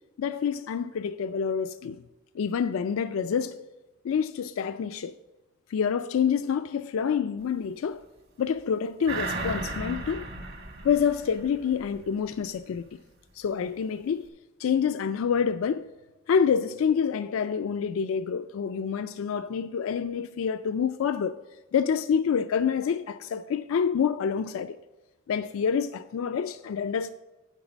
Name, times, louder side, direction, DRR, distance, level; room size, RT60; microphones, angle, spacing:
voice 1, 0.2-2.0 2.3-3.6 4.0-5.2 5.7-8.0 8.4-10.3 10.8-13.0 13.3-14.2 14.6-15.9 16.3-21.4 21.7-24.8 25.3-27.1, left 7 dB, 80° left, 0.3 m, -27 dB
sound 1, 9.1-12.0 12.4-12.5, right 2 dB, 50° right, 1.2 m, -35 dB
10.0 x 4.0 x 7.2 m
head